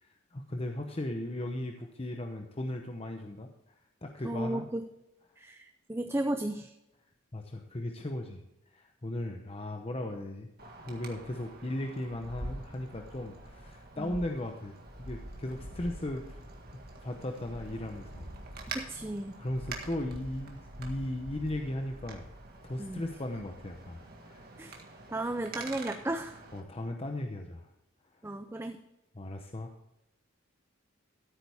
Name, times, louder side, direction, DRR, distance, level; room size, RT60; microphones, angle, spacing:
voice 1, 0.0-3.5 4.0-4.6 7.3-8.4 8.7-10.5 10.8-14.7 15.0-16.4 17.0-18.3 19.4-22.2 22.6-24.5 26.5-27.7 29.1-29.7, left 1 dB, 30° left, 4 dB, 0.8 m, -37 dB
voice 2, 4.2-4.8 5.4-6.7 14.0-14.1 18.7-19.4 22.8-23.0 24.6-24.8 25.1-26.4 28.2-28.8, right 1 dB, 10° right, 7 dB, 0.5 m, -34 dB
Wind, 10.6-26.6, right 2 dB, 45° right, 1.8 m, -45 dB
14.0 x 8.7 x 3.5 m, 0.89 s
head